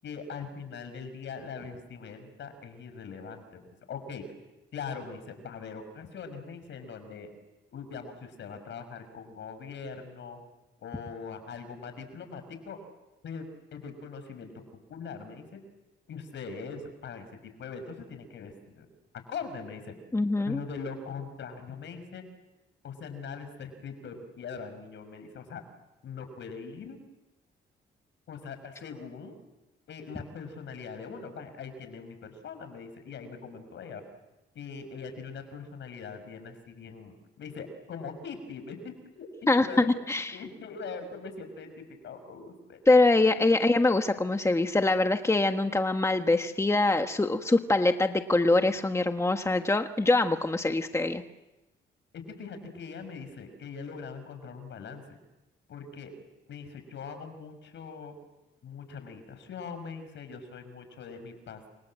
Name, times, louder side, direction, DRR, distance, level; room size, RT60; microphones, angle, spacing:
voice 1, 0.0-4.2 4.7-7.3 7.7-10.4 10.8-12.8 13.2-14.6 14.9-15.6 16.1-17.3 17.6-18.9 19.3-19.9 20.4-22.2 22.8-25.6 26.0-27.0 28.3-29.4 29.9-34.0 34.5-42.8 52.1-55.0 55.7-56.1 56.5-58.1 58.6-61.6, left 5 dB, 65° left, 9 dB, 6.1 m, -41 dB
voice 2, 20.1-20.6 39.5-40.4 42.9-51.2, left 2 dB, 15° left, 6 dB, 1.5 m, -24 dB
30.0 x 26.0 x 7.7 m, 1.0 s
cardioid pair, 90°, 20 cm